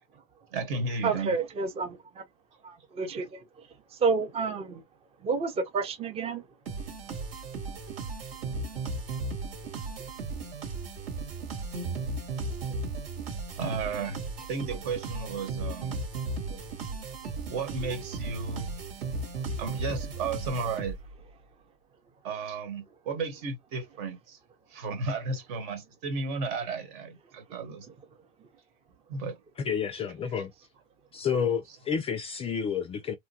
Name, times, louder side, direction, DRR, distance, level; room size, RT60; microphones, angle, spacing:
voice 1, 0.5-1.3 13.6-14.2 14.5-16.0 17.5-18.8 19.6-21.0 22.2-24.4 24.7-27.9 29.1-29.4, right 4 dB, 55° right, 1.4 m, -33 dB
voice 2, 1.0-2.2 2.6-3.4 4.0-4.8 5.2-6.4, right 4 dB, 20° right, 0.7 m, -29 dB
sound 1, 6.7-21.2, right 3 dB, 75° right, 1.8 m, -36 dB
voice 3, 29.6-30.5 31.1-33.2, left 7 dB, 20° left, 0.4 m, -30 dB
3.0 x 2.2 x 2.7 m
hypercardioid pair, 105°, 30 cm